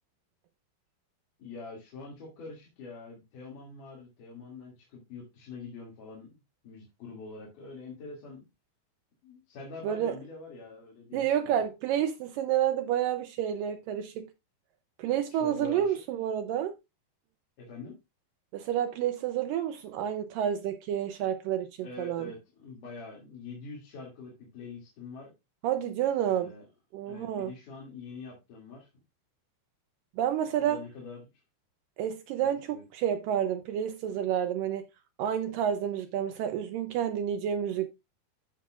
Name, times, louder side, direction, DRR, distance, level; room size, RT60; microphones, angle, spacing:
voice 1, 1.4-6.4 6.6-8.5 9.2-11.6 15.3-16.0 17.6-18.0 21.8-25.3 26.3-26.6 27.1-28.9 30.6-31.2 32.4-32.8, left 4 dB, 60° left, 3.9 m, -45 dB
voice 2, 9.8-10.2 11.1-14.3 15.0-16.8 18.5-22.3 25.6-26.5 26.9-27.5 30.2-30.8 32.0-34.9 35.2-37.9, right 10 dB, 80° right, 2.2 m, -29 dB
13.5 x 5.9 x 2.4 m
omnidirectional pair, 4.2 m